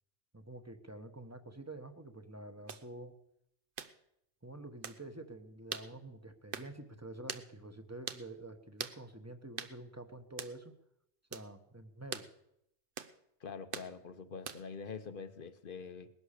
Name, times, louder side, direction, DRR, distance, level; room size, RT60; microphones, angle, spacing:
voice 1, 0.3-3.1 4.4-10.7 11.3-12.3, right 2 dB, 15° right, 8 dB, 1.1 m, -48 dB
sound 1, 2.7-2.9 3.8-4.0 4.8-5.0 5.7-5.9 6.5-6.7 7.3-7.5 8.1-8.3 8.8-9.0 9.6-9.8 10.4-10.6 11.3-11.5 12.1-12.3 13.0-13.2 13.7-13.9 14.5-14.8, right 7 dB, 60° right, 1.0 m, -42 dB
voice 2, 13.4-16.1, left 5 dB, 55° left, 11 dB, 1.2 m, -45 dB
20.0 x 11.0 x 6.7 m, 0.80 s
omnidirectional pair, 1.1 m